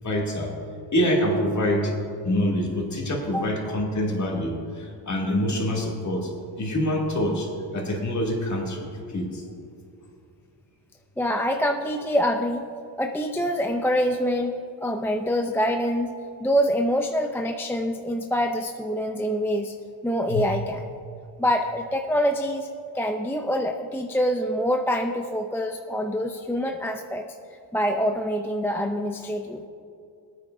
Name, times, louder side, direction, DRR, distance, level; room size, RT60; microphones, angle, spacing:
voice 1, 0.0-0.5 0.9-1.9 2.2-6.3 6.6-9.4 20.3-20.5, left 1 dB, 40° left, -2 dB, 2.6 m, -26 dB
voice 2, 11.2-12.7 13.0-16.1 16.4-19.7 20.0-20.8 21.4-22.7 22.9-27.3 27.7-29.7, equal, 5° left, 4 dB, 0.5 m, -25 dB
22.0 x 9.3 x 2.6 m, 2.5 s
cardioid pair, 105°, 45 cm